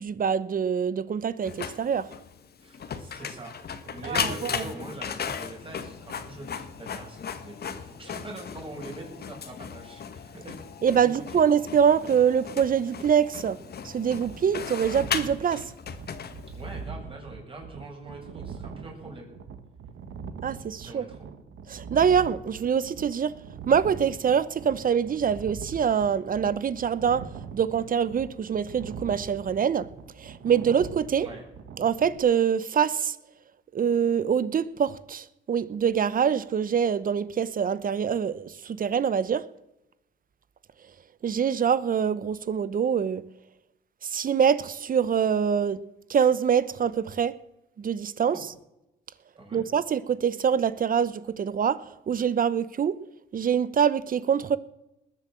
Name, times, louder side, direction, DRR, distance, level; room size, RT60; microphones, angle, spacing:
voice 1, 0.0-2.1 4.0-4.6 10.8-13.6 13.8-15.6 20.4-21.0 21.7-23.3 23.7-27.2 27.5-29.9 30.2-31.3 31.8-33.1 33.7-39.4 41.2-43.2 44.0-45.8 46.1-47.4 47.8-48.4 49.5-51.8 52.1-53.0 53.3-54.6, right 7 dB, 45° right, 17 dB, 0.9 m, -24 dB
Printer, 1.4-16.8, left 7 dB, 55° left, 1.6 m, -36 dB
voice 2, 2.6-3.5 3.8-10.5 11.0-11.4 16.6-19.3 20.8-21.2 31.2-31.5 48.2-48.4 49.4-49.6, right 2 dB, 25° right, 0 dB, 6.9 m, -43 dB
sound 1, 14.0-32.2, right 6 dB, 70° right, 1.5 m, -42 dB
20.0 x 7.7 x 7.5 m, 0.90 s
cardioid pair, 90°, 20 cm